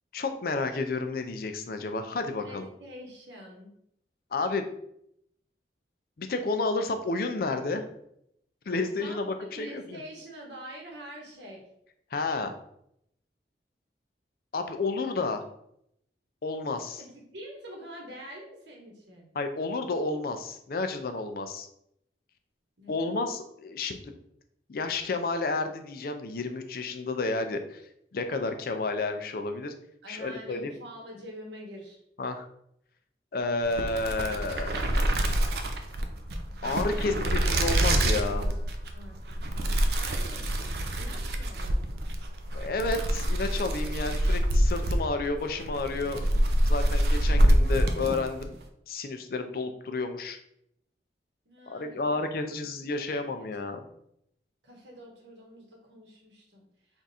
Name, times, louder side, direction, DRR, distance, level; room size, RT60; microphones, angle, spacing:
voice 1, 0.1-2.7 4.3-4.7 6.2-7.8 8.7-10.0 12.1-12.5 14.5-15.4 16.4-17.0 19.3-21.7 22.9-24.1 24.7-27.8 28.1-29.7 30.1-30.7 32.2-32.5 33.3-34.8 36.6-38.4 42.5-46.3 46.7-48.6 48.9-50.4 51.7-53.8, left 3 dB, 55° left, 7 dB, 0.4 m, -31 dB
voice 2, 2.4-3.7 9.0-11.6 17.0-19.3 22.8-23.1 30.0-32.0 36.9-38.5 38.9-39.5 39.9-42.1 51.4-52.3 52.6-52.7 53.1-53.8 54.6-56.7, equal, 90° right, -1 dB, 1.2 m, -46 dB
sound 1, 33.6-48.5, right 1 dB, 60° right, 0.5 m, -26 dB
3.5 x 2.5 x 4.1 m, 0.74 s
head